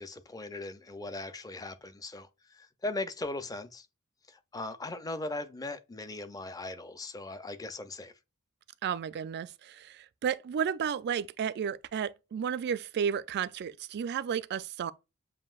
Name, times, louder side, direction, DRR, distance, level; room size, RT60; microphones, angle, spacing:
voice 1, 0.0-3.9 4.3-8.1, left 2 dB, 15° left, 0.4 m, -39 dB
voice 2, 8.8-14.9, right 7 dB, 50° right, 0.3 m, -32 dB
7.4 x 2.6 x 2.3 m
head